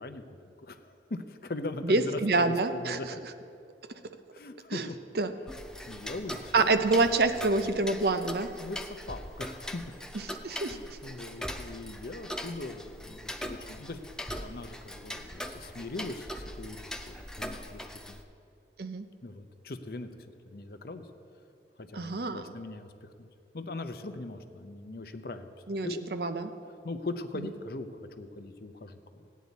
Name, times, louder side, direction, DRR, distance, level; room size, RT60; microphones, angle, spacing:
voice 1, 0.0-3.2 4.3-5.0 5.9-6.9 8.6-9.9 10.6-18.2 19.2-20.1 20.4-21.1 21.8-23.3 23.5-25.5 25.8-26.0 26.8-27.9 28.2-29.3, left 2 dB, 55° left, 8 dB, 0.7 m, -40 dB
voice 2, 1.8-3.0 4.7-4.9 5.2-5.3 6.5-8.5 10.4-10.8 18.8-19.0 21.9-22.5 25.7-26.5, right 3 dB, 60° right, 9 dB, 0.6 m, -27 dB
Tick-tock, 5.5-18.2, equal, 5° left, 0.4 m, -41 dB
16.0 x 9.3 x 4.1 m, 2.6 s
head